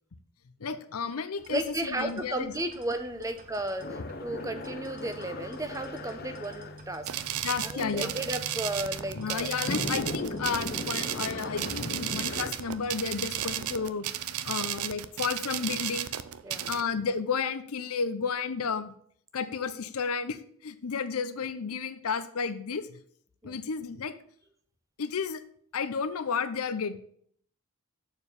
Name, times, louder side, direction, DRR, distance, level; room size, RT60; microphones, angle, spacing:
voice 1, 0.6-2.5 7.4-8.1 9.1-14.1 14.4-16.1 16.7-18.9 19.3-23.0 23.4-24.2 25.0-25.4 25.7-27.0, left 5 dB, 80° left, 12 dB, 0.6 m, -32 dB
sound 1, 1.4-13.8, right 2 dB, 40° right, 1.1 m, -53 dB
voice 2, 1.5-7.2 7.6-9.5 16.4-16.7 23.4-23.6, right 1 dB, 15° right, 8 dB, 0.6 m, -34 dB
sound 2, 3.8-12.5, left 2 dB, 45° left, 0.7 m, -38 dB
sound 3, 7.1-16.8, right 11 dB, 80° right, 0.5 m, -34 dB
6.9 x 4.5 x 6.8 m, 0.63 s
head